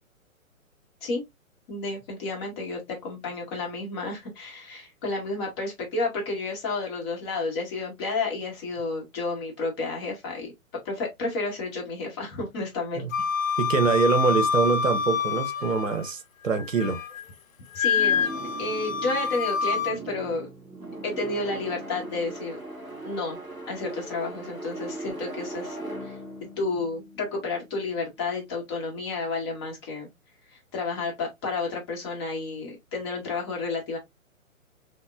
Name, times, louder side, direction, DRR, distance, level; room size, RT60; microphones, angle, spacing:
voice 1, 1.7-10.5 10.8-13.0 17.7-18.3 18.6-20.5 21.0-22.6 23.0-23.4 23.7-25.8 26.0-26.2 26.6-30.1 30.7-34.0, left 3 dB, 20° left, 0.9 m, -31 dB
Wind instrument woodwind instrument, 13.1-16.1 16.5-17.2 17.8-20.0, left 6 dB, 70° left, 0.5 m, -27 dB
voice 2, 13.6-16.2 16.4-17.0, right 5 dB, 65° right, 0.7 m, -24 dB
sound 1, 17.9-27.9, right 2 dB, 5° right, 0.5 m, -39 dB
5.2 x 2.1 x 2.4 m
figure-of-eight pair, 130°, 41 cm